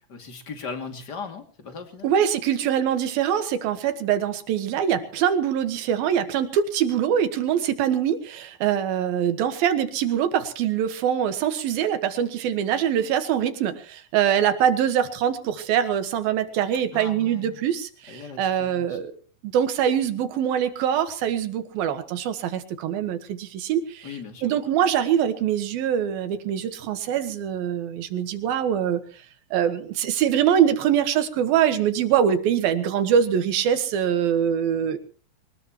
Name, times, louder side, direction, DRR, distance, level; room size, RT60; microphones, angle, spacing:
voice 1, 0.1-2.1 16.9-17.6 18.1-19.0 24.0-24.5, left 5 dB, 30° left, 5 dB, 2.6 m, -38 dB
voice 2, 2.0-19.1 19.4-24.1 24.4-29.0 29.5-35.0, right 9 dB, 85° right, 10 dB, 3.3 m, -23 dB
23.5 x 19.5 x 3.0 m, 0.40 s
omnidirectional pair, 4.1 m